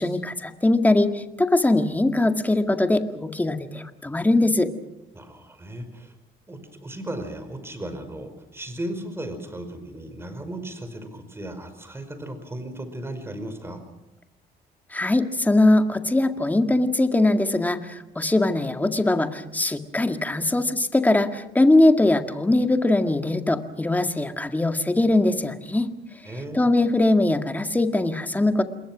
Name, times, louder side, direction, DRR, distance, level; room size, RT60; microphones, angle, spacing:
voice 1, 0.0-4.7 14.9-25.9 26.5-28.6, left 2 dB, 10° left, 7 dB, 1.9 m, -21 dB
voice 2, 5.1-6.1 6.5-13.8 26.2-26.7, right 1 dB, 15° right, 8 dB, 5.1 m, -36 dB
28.0 x 21.5 x 6.2 m, 0.89 s
cardioid pair, 110°, 17 cm